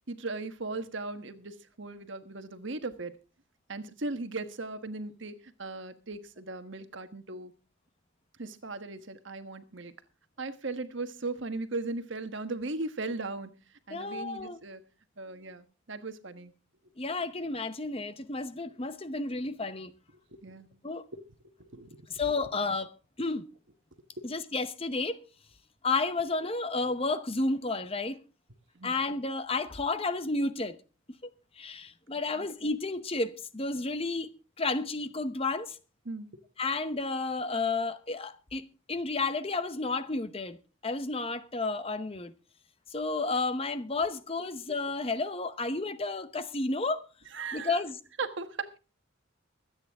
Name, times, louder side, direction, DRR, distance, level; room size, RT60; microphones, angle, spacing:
voice 1, 0.1-3.1 3.7-7.5 8.4-9.9 10.4-13.5 13.9-14.8 15.2-16.5 20.4-20.7 21.1-21.2 21.6-22.0 28.8-29.0 32.4-32.5 36.1-36.3 47.3-47.8 48.2-48.8, right 3 dB, 60° right, 1.3 m, -37 dB
voice 2, 13.9-14.6 17.0-19.9 20.8-21.0 22.1-22.9 23.2-23.4 24.2-25.2 25.8-28.2 28.8-30.8 31.2-31.3 31.6-34.3 34.6-35.8 36.6-40.6 40.8-42.3 42.9-47.0 47.5-48.0, left 3 dB, 25° left, 0.9 m, -31 dB
24.0 x 9.1 x 3.6 m
head